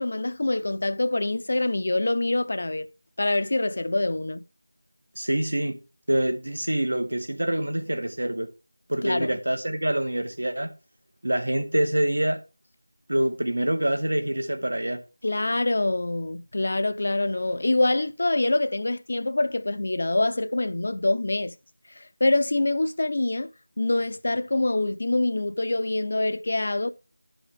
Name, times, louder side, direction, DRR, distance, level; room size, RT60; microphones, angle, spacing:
voice 1, 0.0-2.9 3.2-4.4 9.0-9.3 15.2-21.5 22.0-23.5 23.8-26.9, left 2 dB, 45° left, 0.6 m, -25 dB
voice 2, 5.1-5.8 6.1-8.5 8.9-10.7 11.2-12.4 13.1-15.0, right 1 dB, 75° right, 1.7 m, -26 dB
12.0 x 4.9 x 3.5 m
figure-of-eight pair, 175°, 0 cm